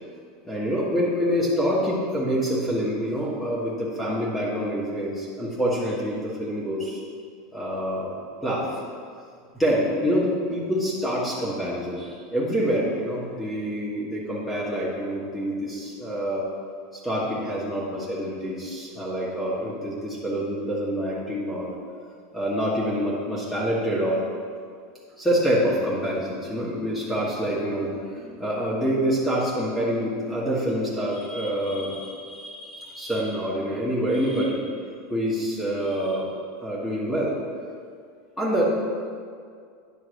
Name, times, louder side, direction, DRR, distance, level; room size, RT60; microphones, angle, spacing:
voice 1, 0.4-7.0 7.5-8.2 8.4-8.8 9.5-16.5 16.9-21.7 22.3-24.2 25.2-34.7 35.1-36.3 36.6-37.3 38.4-38.6, equal, 10° left, -6 dB, 1.4 m, -26 dB
9.7 x 3.9 x 6.3 m, 2.2 s
supercardioid pair, 145°, 0 cm